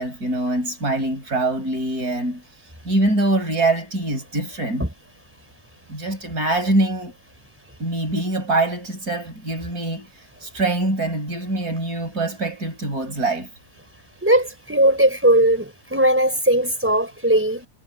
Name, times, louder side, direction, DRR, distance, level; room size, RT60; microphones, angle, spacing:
voice 1, 0.0-2.4 2.8-4.9 5.9-7.2 7.8-10.1 10.4-13.5, right 2 dB, 85° right, 6.9 m, -24 dB
voice 2, 14.2-17.7, right 1 dB, 10° right, 4.2 m, -18 dB
omnidirectional pair, 1.6 m